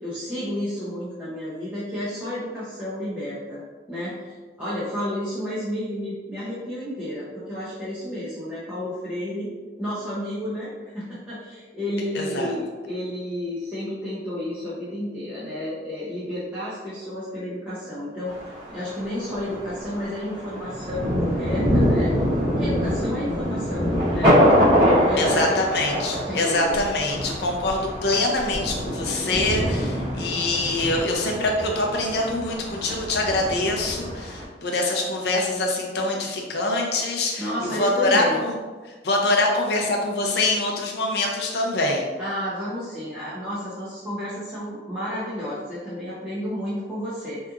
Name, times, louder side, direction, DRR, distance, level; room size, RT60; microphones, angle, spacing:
voice 1, 0.0-3.6 3.9-9.5 9.8-22.1 22.5-24.4 24.8-25.8 26.2-26.9 37.4-38.4 42.2-47.4, left 1 dB, 10° right, -11 dB, 0.5 m, -31 dB
voice 2, 12.1-12.5 25.2-38.6 38.9-42.1, left 2 dB, 60° left, 1 dB, 0.5 m, -24 dB
Thunder, 18.3-34.5, equal, 30° right, 1.0 m, -24 dB
2.8 x 2.4 x 2.3 m, 1.4 s
head